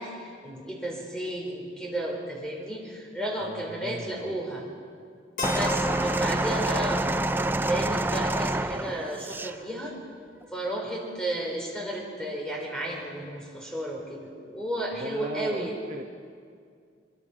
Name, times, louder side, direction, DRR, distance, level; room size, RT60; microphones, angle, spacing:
voice 1, 0.0-4.7 5.5-7.1 7.7-10.0 10.5-15.7, right 1 dB, 5° left, -1 dB, 4.2 m, -33 dB
voice 2, 3.4-4.3 15.0-16.0, right 1 dB, 35° right, 3 dB, 0.9 m, -37 dB
Keyboard (musical), 5.4-9.3, left 2 dB, 45° left, 1.8 m, -39 dB
sound 1, 5.4-9.6 10.4-10.6, right 2 dB, 10° right, 0.4 m, -27 dB
23.5 x 22.5 x 6.2 m, 2.2 s
head